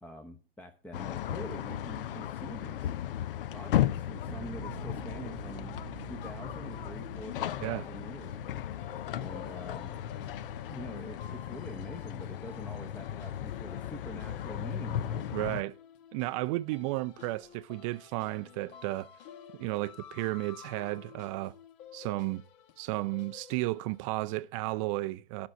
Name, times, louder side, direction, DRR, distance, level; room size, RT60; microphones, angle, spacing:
voice 1, 0.0-2.9 3.5-8.4 9.1-10.0 10.7-15.6, equal, 5° left, 0.8 m, -45 dB
sound 1, 0.9-15.6, left 11 dB, 65° left, 0.6 m, -36 dB
Bass guitar, 4.3-10.5, right 9 dB, 80° right, 0.9 m, -48 dB
sound 2, 5.3-24.1, left 8 dB, 45° left, 1.1 m, -53 dB
voice 2, 15.3-15.7 16.1-19.1 19.5-21.5 21.9-22.4 22.8-25.5, right 19 dB, 35° right, 0.4 m, -33 dB
11.5 x 6.2 x 6.4 m
hypercardioid pair, 120°, 30 cm